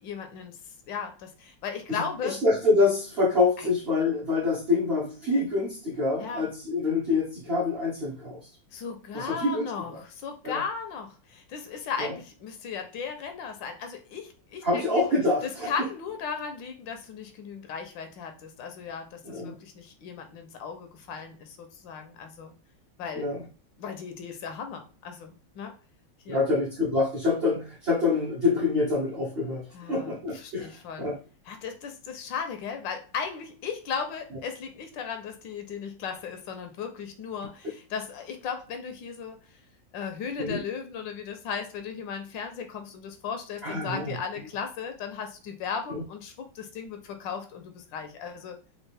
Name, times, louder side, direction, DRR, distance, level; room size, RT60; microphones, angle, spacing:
voice 1, 0.0-2.4 3.6-3.7 6.2-6.5 8.7-14.9 15.4-22.5 23.0-23.3 23.8-25.8 26.2-26.4 29.7-31.1 31.5-39.5 39.9-48.6, left 6 dB, 80° left, 6 dB, 1.4 m, -36 dB
voice 2, 1.9-8.4 9.1-10.0 10.4-10.6 12.0-12.2 14.6-15.7 19.2-19.5 23.2-23.4 26.3-31.2 40.4-40.6 43.6-44.2 45.9-46.0, left 3 dB, 45° right, -4 dB, 0.8 m, -26 dB
4.4 x 2.4 x 3.3 m, 0.35 s
omnidirectional pair, 2.0 m